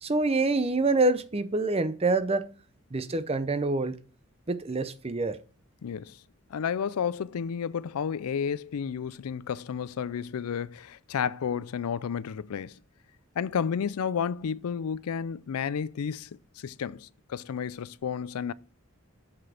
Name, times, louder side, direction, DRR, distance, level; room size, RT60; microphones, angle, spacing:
voice 1, 0.0-2.4 2.9-3.9 4.5-5.4, right 2 dB, 25° right, 0.6 m, -26 dB
voice 2, 5.8-6.2 6.5-12.8 13.4-16.3 16.6-18.5, left 7 dB, 80° left, 0.4 m, -31 dB
7.7 x 6.1 x 4.9 m
head